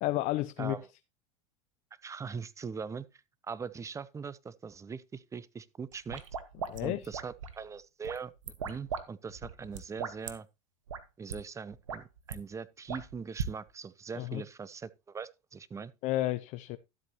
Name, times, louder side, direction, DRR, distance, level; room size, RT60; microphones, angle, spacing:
voice 1, 0.0-0.8 6.7-7.1 14.2-14.4 16.0-16.8, left 16 dB, 50° left, 0.6 m, -31 dB
voice 2, 2.0-3.1 3.4-6.2 6.8-8.3 8.6-10.5 11.2-15.9, right 5 dB, 20° right, 0.6 m, -41 dB
sound 1, 5.9-7.6 8.0-9.0 9.3-10.3 10.9-11.0 11.3-11.4 11.7-12.4 12.9-13.5, right 6 dB, 90° right, 1.1 m, -38 dB
12.5 x 8.1 x 2.9 m
hypercardioid pair, 90°, 16 cm